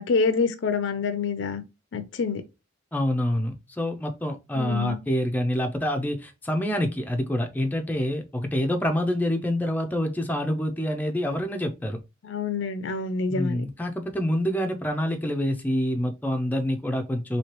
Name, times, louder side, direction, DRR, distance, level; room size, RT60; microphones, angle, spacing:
voice 1, 0.0-1.6 1.9-2.4 4.5-5.0 12.2-13.6, left 4 dB, 65° left, 0.4 m, -26 dB
voice 2, 2.9-12.0 13.3-17.4, equal, 10° left, 0.4 m, -27 dB
3.1 x 2.7 x 2.9 m
head